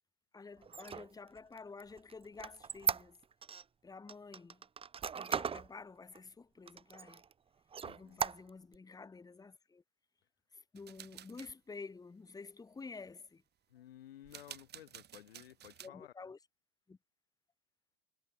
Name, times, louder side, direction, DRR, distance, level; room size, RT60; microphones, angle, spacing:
voice 1, 0.3-3.2 3.8-4.6 5.1-7.2 7.9-9.8 10.5-13.4 15.8-16.4 16.9-17.0, left 4 dB, 10° left, 1.9 m, -50 dB
Squeak, 0.6-3.6 4.1-5.7 6.1-6.2 6.7-7.3 7.7-8.8, right 6 dB, 20° right, 1.1 m, -38 dB
voice 2, 7.8-8.2 13.7-16.1, left 12 dB, 90° left, 2.2 m, -55 dB
sound 1, 10.8-11.5 14.2-15.9, right 11 dB, 35° right, 4.0 m, -52 dB
hypercardioid pair, 110°, 29 cm